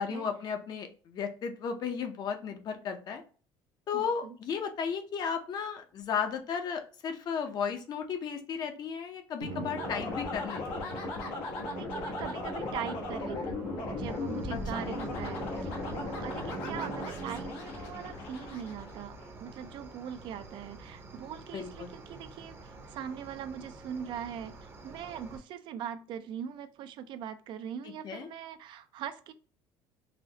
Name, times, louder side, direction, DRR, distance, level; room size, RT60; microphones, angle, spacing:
voice 1, 0.0-3.2 3.9-11.0 14.5-14.9 21.5-21.9 28.0-28.3, left 6 dB, 45° left, 6 dB, 0.6 m, -34 dB
voice 2, 3.9-4.4 11.7-13.6 13.9-29.3, right 9 dB, 55° right, 11 dB, 0.4 m, -41 dB
Musical instrument, 9.4-17.9, right 5 dB, 85° right, 0.7 m, -42 dB
sound 1, 9.8-19.3, left 4 dB, 85° left, 0.9 m, -38 dB
Cricket, 14.0-25.4, right 3 dB, 25° right, 0.7 m, -49 dB
4.0 x 2.0 x 2.7 m, 0.39 s
cardioid pair, 125°, 10 cm